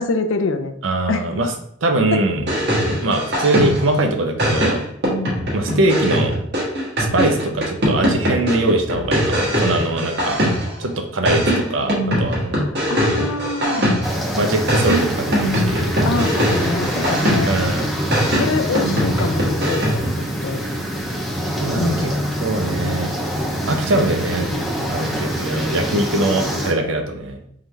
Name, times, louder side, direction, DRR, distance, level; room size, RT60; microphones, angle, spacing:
voice 1, 0.0-0.8 1.1-1.4 2.1-2.2 12.6-13.9 16.0-17.5 18.3-20.6 21.8-22.1, left 3 dB, 85° left, 8 dB, 0.4 m, -25 dB
voice 2, 0.8-1.5 1.8-2.4 3.0-4.8 5.5-6.3 7.0-10.4 10.8-12.6 14.4-15.9 17.5-17.9 21.6-22.1 22.4-23.2 23.7-24.5 24.9-27.4, right 2 dB, 85° right, 5 dB, 0.6 m, -22 dB
sound 1, 2.3-4.0 4.4-10.8 11.2-14.3 14.7-17.7 18.1-20.2, equal, 60° right, 1.3 m, -21 dB
sound 2, 14.0-26.7, equal, ahead, 0.6 m, -25 dB
3.7 x 3.3 x 3.1 m, 0.71 s
head